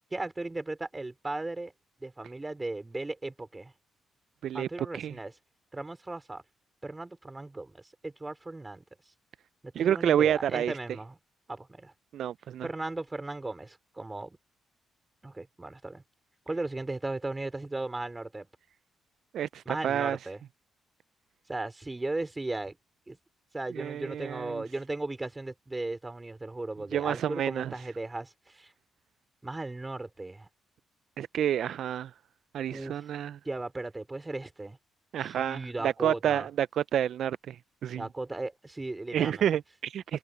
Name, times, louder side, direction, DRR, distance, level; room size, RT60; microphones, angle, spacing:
voice 1, 0.1-1.7 2.0-3.7 4.5-5.3 5.7-6.4 6.8-8.8 9.8-11.2 11.5-11.9 12.6-14.4 15.2-16.0 16.5-18.5 19.7-20.4 21.5-22.8 23.1-23.2 23.5-28.7 29.4-30.5 32.7-33.0 33.4-34.8 35.2-36.5 38.0-39.5, right 2 dB, 15° right, 4.1 m, -36 dB
voice 2, 9.8-10.7 12.1-12.7 19.3-20.2 23.8-24.6 26.9-27.7 31.2-32.1 32.5-33.4 35.1-36.7 36.9-37.6 37.8-38.0 39.1-40.2, right 10 dB, 65° right, 0.3 m, -29 dB
cardioid pair, 110°, 0 cm